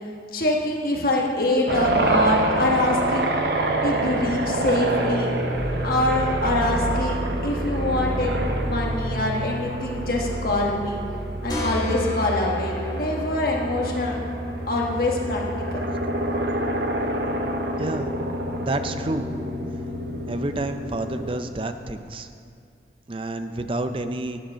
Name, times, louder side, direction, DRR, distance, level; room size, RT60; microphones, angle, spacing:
voice 1, 0.3-3.3 3.8-5.3 5.8-11.0 11.4-14.2 14.7-15.4 15.7-15.8, left 1 dB, 55° left, -1 dB, 1.3 m, -24 dB
sound 1, 1.7-21.4, right 1 dB, 65° right, 1.0 m, -27 dB
sound 2, 5.5-11.6, right 1 dB, 5° left, 0.9 m, -32 dB
sound 3, 11.5-16.9, equal, 25° left, 1.8 m, -33 dB
voice 2, 18.6-19.3 20.3-22.3 23.1-24.4, right 2 dB, 30° right, 8 dB, 0.5 m, -29 dB
10.0 x 8.0 x 6.2 m, 2.4 s
head